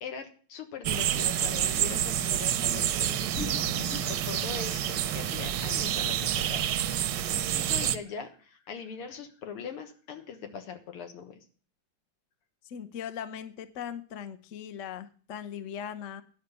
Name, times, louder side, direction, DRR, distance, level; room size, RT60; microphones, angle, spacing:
voice 1, 0.0-3.4 4.1-6.8 7.4-11.4, left 6 dB, 85° left, 6 dB, 2.3 m, -41 dB
sound 1, 0.8-8.0, right 10 dB, 70° right, 1.1 m, -28 dB
sound 2, 2.8-2.9 3.2-4.2 5.3-5.4 5.9-6.0 6.2-6.7, left 2 dB, 40° left, 1.4 m, -38 dB
voice 2, 12.6-16.2, left 8 dB, 60° left, 12 dB, 0.8 m, -39 dB
10.5 x 5.8 x 8.2 m, 0.42 s
omnidirectional pair, 2.4 m